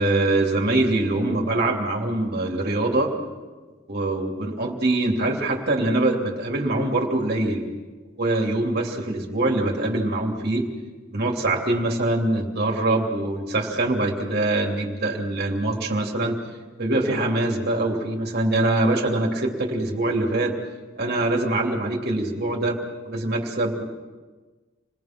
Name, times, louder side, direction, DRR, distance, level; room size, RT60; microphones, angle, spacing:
voice 1, 0.0-3.1 3.9-7.6 8.2-10.7 11.1-16.4 16.8-20.5 21.0-23.8, right 2 dB, 50° right, 0 dB, 3.1 m, -23 dB
28.5 x 19.5 x 6.1 m, 1.3 s
head